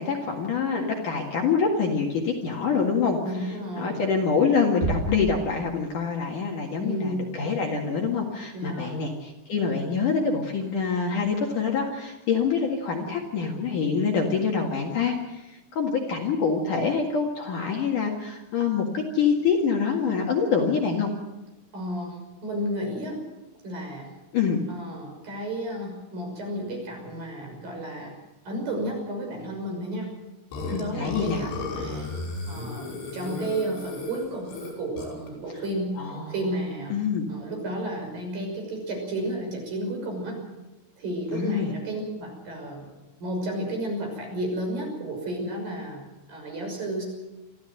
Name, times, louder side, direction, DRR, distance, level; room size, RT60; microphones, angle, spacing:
voice 1, 0.0-3.2 3.5-21.1 24.3-24.6 30.7-31.4 36.0-36.3 36.9-37.3 41.3-41.7, left 5 dB, 55° left, 1 dB, 2.9 m, -26 dB
voice 2, 3.2-4.0 6.8-7.3 8.5-9.0 21.7-23.2 23.6-24.1 24.7-28.2 28.5-30.1 30.8-32.1 32.5-36.0 36.3-36.9 37.3-40.4 41.0-42.9 43.2-46.0 46.3-47.0, right 1 dB, 50° right, 1 dB, 7.6 m, -32 dB
sound 1, 4.8-6.4, right 2 dB, 70° right, 5.7 m, -32 dB
Burping eructation, 30.5-35.3, left 3 dB, 80° left, 8.1 m, -34 dB
24.0 x 15.0 x 7.9 m, 1.0 s
omnidirectional pair, 5.3 m